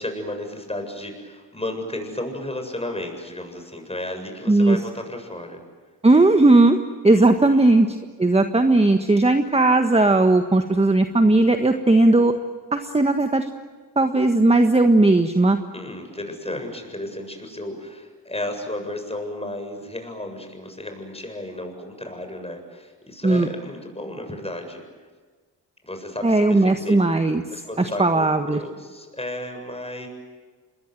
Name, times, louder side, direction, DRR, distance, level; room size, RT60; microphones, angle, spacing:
voice 1, 0.0-5.6 7.1-7.8 15.7-24.8 25.8-27.0 27.5-30.1, left 1 dB, 15° left, 5 dB, 7.7 m, -33 dB
voice 2, 4.5-4.8 6.0-6.8 7.0-12.4 12.7-13.5 13.9-15.6 23.2-23.5 26.2-27.4 27.8-28.6, right 2 dB, 15° right, 6 dB, 1.5 m, -17 dB
26.5 x 21.5 x 9.3 m, 1.4 s
supercardioid pair, 55°, 41 cm